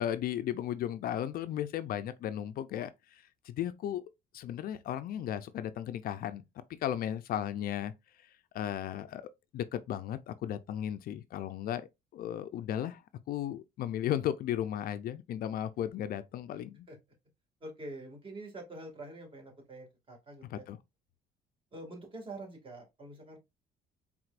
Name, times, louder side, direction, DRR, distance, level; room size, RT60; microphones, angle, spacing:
voice 1, 0.0-4.0 4.3-6.4 6.8-7.9 8.5-13.0 13.3-16.9 20.5-20.8, left 11 dB, 60° left, 0.5 m, -35 dB
voice 2, 17.6-20.6 21.7-23.4, right 2 dB, 30° right, 2.1 m, -46 dB
4.6 x 3.6 x 2.5 m
cardioid pair, 110°, 17 cm